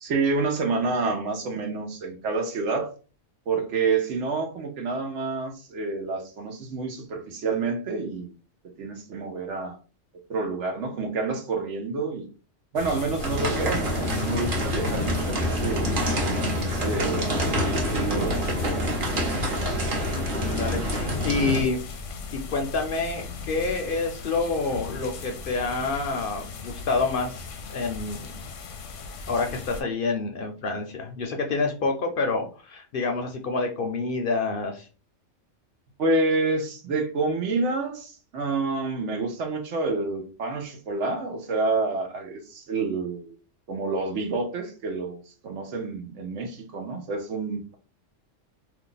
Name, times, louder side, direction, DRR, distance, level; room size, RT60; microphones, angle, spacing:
voice 1, 0.0-2.9 3.5-8.3 8.8-9.8 10.3-12.3 12.7-15.9 16.5-17.7 17.9-19.0 36.0-43.3 43.7-47.8, right 3 dB, 75° right, 4 dB, 1.1 m, -28 dB
sound 1, 12.8-29.8, left 4 dB, 85° left, 1.0 m, -36 dB
sound 2, 13.2-21.6, equal, 45° right, 1.0 m, -27 dB
voice 2, 20.3-21.8 22.3-28.3 29.3-34.9, left 3 dB, 60° left, 3 dB, 0.6 m, -28 dB
2.6 x 2.3 x 3.8 m, 0.36 s
omnidirectional pair, 1.3 m